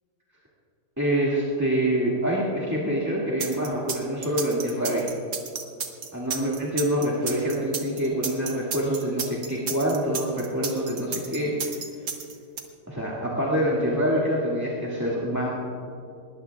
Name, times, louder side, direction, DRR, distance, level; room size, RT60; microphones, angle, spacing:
voice 1, 1.0-5.0 6.1-11.5 12.9-15.5, equal, 10° right, -6 dB, 2.0 m, -26 dB
sound 1, 3.4-12.6, right 6 dB, 85° right, 2.0 m, -32 dB
21.0 x 19.0 x 2.3 m, 2.5 s
omnidirectional pair, 1.8 m